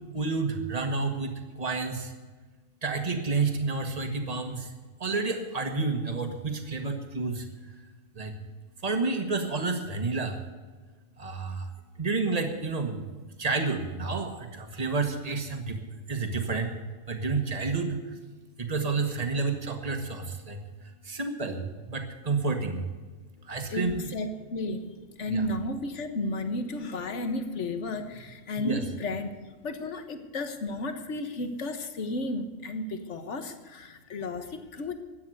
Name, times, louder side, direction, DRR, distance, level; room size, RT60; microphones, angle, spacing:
voice 1, 0.1-1.3 1.6-2.0 2.8-4.6 5.0-7.3 8.2-8.3 8.8-10.3 11.2-11.6 12.0-13.0 13.4-14.3 14.6-15.8 16.1-16.7 17.1-18.0 18.6-20.6 21.1-21.6 21.9-22.8 23.5-24.1 25.3-25.5 28.6-28.8, right 4 dB, 30° right, 5 dB, 1.8 m, -29 dB
voice 2, 23.7-24.9 25.2-29.3 29.6-34.9, left 2 dB, 60° left, 8 dB, 1.7 m, -33 dB
14.0 x 9.6 x 7.9 m, 1.4 s
omnidirectional pair, 1.4 m